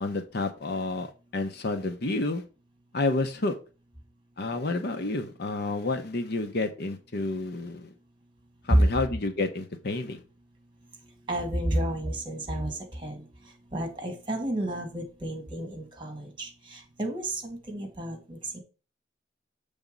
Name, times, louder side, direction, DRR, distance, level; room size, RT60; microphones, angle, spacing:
voice 1, 0.0-2.4 2.9-3.5 4.4-7.9 8.7-10.2, left 2 dB, 60° left, 7 dB, 0.9 m, -30 dB
voice 2, 11.3-13.2 13.7-18.6, right 1 dB, 25° right, 3 dB, 2.0 m, -32 dB
7.2 x 3.6 x 5.2 m, 0.34 s
head